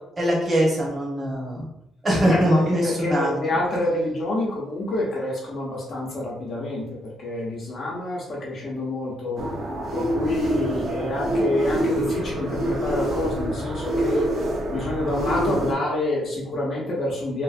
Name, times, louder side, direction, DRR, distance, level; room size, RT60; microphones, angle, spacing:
voice 1, 0.2-1.7 2.0-3.4, equal, 25° right, -5 dB, 1.2 m, -22 dB
voice 2, 2.3-9.4 9.9-14.3 14.7-17.4, left 1 dB, 60° left, -4 dB, 0.8 m, -27 dB
sound 1, 9.4-15.7, right 1 dB, 60° right, 0.8 m, -26 dB
3.0 x 2.5 x 2.4 m, 0.83 s
cardioid pair, 90°, 0 cm